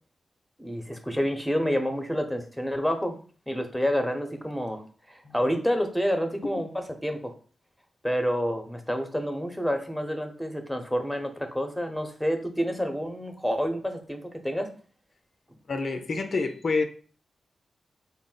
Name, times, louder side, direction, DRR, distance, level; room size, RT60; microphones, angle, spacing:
voice 1, 0.6-3.2 3.5-7.3 8.0-14.7, equal, ahead, 0.9 m, -28 dB
voice 2, 15.7-16.8, left 3 dB, 65° left, 0.5 m, -27 dB
4.1 x 2.0 x 3.9 m
supercardioid pair, 40°, 0 cm